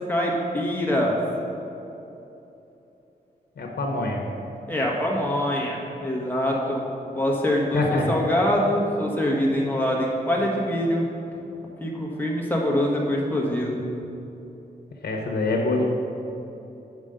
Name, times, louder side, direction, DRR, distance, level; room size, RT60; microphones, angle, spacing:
voice 1, 0.1-1.2 4.7-6.8 7.1-11.0 11.8-13.8, left 1 dB, 10° left, -3 dB, 1.6 m, -24 dB
voice 2, 3.6-4.2 7.7-8.2 15.0-15.9, left 2 dB, 80° left, -1 dB, 1.1 m, -25 dB
8.2 x 6.3 x 5.1 m, 3.0 s
wide cardioid pair, 115°, 17 cm